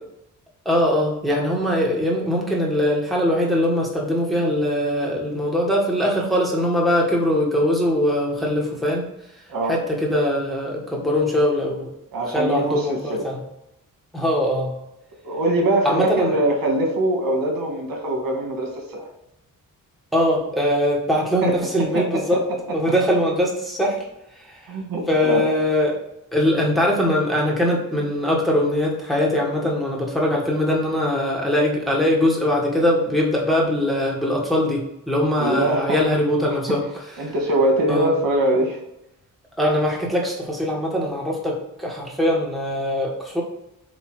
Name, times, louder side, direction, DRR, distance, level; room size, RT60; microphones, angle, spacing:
voice 1, 0.6-9.1 9.7-11.9 12.3-13.4 14.1-14.7 15.8-16.4 20.1-22.4 22.7-24.0 24.4-24.6 25.1-26.0 26.3-37.3 37.9-38.1 39.6-43.4, left 1 dB, ahead, -3 dB, 1.4 m, -21 dB
voice 2, 12.1-13.2 15.2-19.1 21.4-22.2 22.5-22.6 22.9-23.0 24.7-25.5 35.4-36.0 36.5-36.6 37.2-38.8, right 1 dB, 90° right, 0 dB, 1.7 m, -23 dB
8.1 x 2.7 x 4.7 m, 0.87 s
wide cardioid pair, 145°, 33 cm